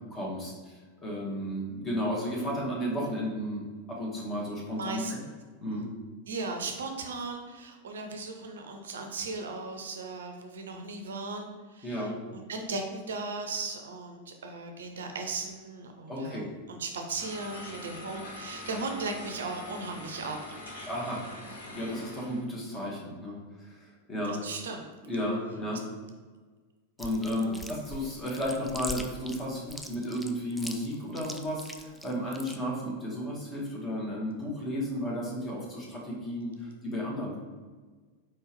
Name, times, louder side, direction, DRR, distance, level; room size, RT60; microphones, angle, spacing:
voice 1, 0.1-3.6 3.9-5.0 5.6-5.9 11.8-12.2 16.1-16.5 20.9-21.2 21.7-24.4 25.1-25.8 27.0-37.4, equal, 20° left, -3 dB, 1.4 m, -33 dB
voice 2, 4.7-5.3 6.3-20.4 24.3-24.8 27.4-27.6, right 3 dB, 65° right, 4 dB, 0.5 m, -37 dB
sound 1, 17.2-22.4, left 2 dB, 70° left, 1.0 m, -43 dB
Chewing mastication, 27.0-32.6, equal, ahead, 0.4 m, -41 dB
4.5 x 3.5 x 3.0 m, 1.4 s
figure-of-eight pair, 90°, 0 cm